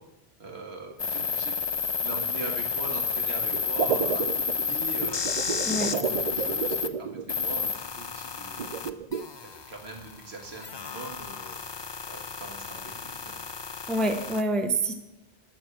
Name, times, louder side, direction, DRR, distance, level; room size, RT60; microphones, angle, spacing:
voice 1, 0.4-1.5 2.0-5.3 5.9-8.9 9.4-11.6 12.1-13.3, right 3 dB, 75° right, 1 dB, 2.1 m, -41 dB
sound 1, 1.0-6.9 7.3-14.4, left 6 dB, 35° left, 0.4 m, -31 dB
sound 2, 3.5-7.7 8.6-9.2, right 7 dB, 50° right, 0.5 m, -31 dB
voice 2, 13.9-14.9, right 1 dB, ahead, 7 dB, 0.7 m, -26 dB
11.5 x 6.3 x 7.3 m, 0.98 s
omnidirectional pair, 1.1 m